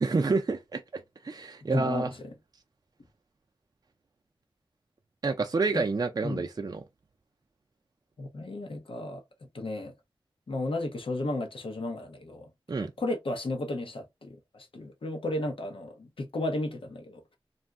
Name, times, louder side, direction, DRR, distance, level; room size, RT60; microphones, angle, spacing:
voice 1, 0.0-2.1 5.2-6.8 12.7-12.9, right 3 dB, 45° right, 0.4 m, -29 dB
voice 2, 1.7-2.3 5.7-5.8 6.2-6.5 8.2-9.2 9.5-9.9 10.5-17.4, left 2 dB, 70° left, 0.9 m, -34 dB
2.5 x 2.1 x 3.5 m
cardioid pair, 45°, 9 cm